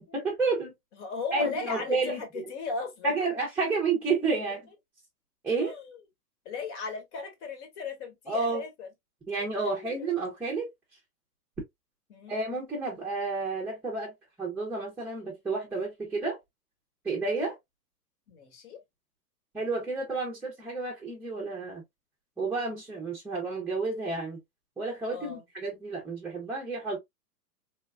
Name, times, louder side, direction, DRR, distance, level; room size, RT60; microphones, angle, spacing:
voice 1, 0.1-0.7 1.3-2.2 3.0-4.7 5.4-5.7 8.3-8.6 9.3-10.7 12.3-14.1 14.4-16.4 17.0-17.6 19.5-21.8 22.4-24.4 24.8-27.0, right 3 dB, 5° right, 0.6 m, -30 dB
voice 2, 1.0-3.2 5.5-6.0 6.4-8.9 9.6-10.2 12.1-12.3 18.3-18.8 25.1-25.4, left 4 dB, 45° left, 1.2 m, -37 dB
3.3 x 2.2 x 2.4 m
hypercardioid pair, 115°, 49 cm